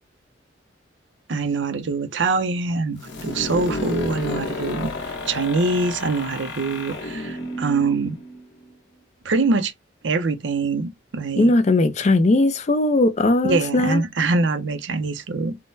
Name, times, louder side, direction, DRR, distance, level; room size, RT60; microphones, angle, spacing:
voice 1, 1.3-8.2 9.2-9.7 10.0-11.5 13.4-15.6, right 3 dB, 70° right, 0.5 m, -24 dB
sound 1, 3.0-8.7, left 2 dB, 70° left, 1.0 m, -31 dB
voice 2, 11.4-14.0, left 2 dB, 35° left, 0.4 m, -18 dB
3.5 x 2.1 x 2.5 m
head